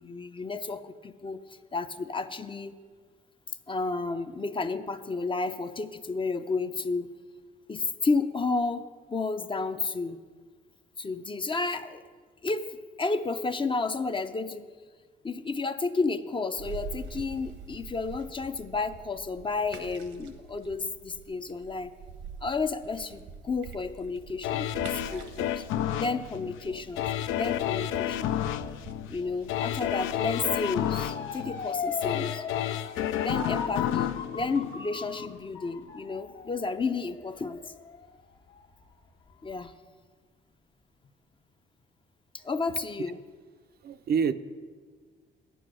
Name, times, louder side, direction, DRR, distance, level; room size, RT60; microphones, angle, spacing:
voice 1, 0.0-1.4 1.7-2.8 3.7-7.1 7.7-10.2 11.0-12.0 12.4-14.7 15.2-21.9 22.4-25.6 25.9-28.3 29.1-32.4 33.2-37.6 39.4-39.7 42.4-43.2, left 3 dB, 25° left, 9 dB, 0.5 m, -32 dB
sound 1, 16.6-30.6, right 5 dB, 80° right, 1.0 m, -46 dB
sound 2, 24.4-35.4 35.8-35.9, left 11 dB, 85° left, 0.4 m, -31 dB
Motor vehicle (road) / Siren, 29.9-38.8 39.3-39.7, left 6 dB, 65° left, 1.4 m, -39 dB
voice 2, 43.8-44.3, right 6 dB, 50° right, 11 dB, 0.5 m, -27 dB
9.1 x 7.8 x 6.3 m, 1.5 s
cardioid pair, 90°, 20 cm